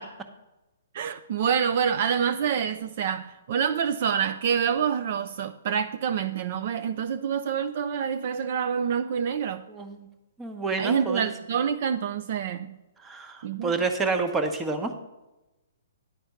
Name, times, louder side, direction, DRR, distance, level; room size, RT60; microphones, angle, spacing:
voice 1, 0.9-9.6 10.8-12.8 13.4-13.7, right 7 dB, 50° right, 0.4 m, -27 dB
voice 2, 9.7-10.1 10.4-11.3 13.0-14.9, right 4 dB, 10° right, 0.9 m, -28 dB
10.5 x 4.3 x 7.0 m
hypercardioid pair, 150°, 0 cm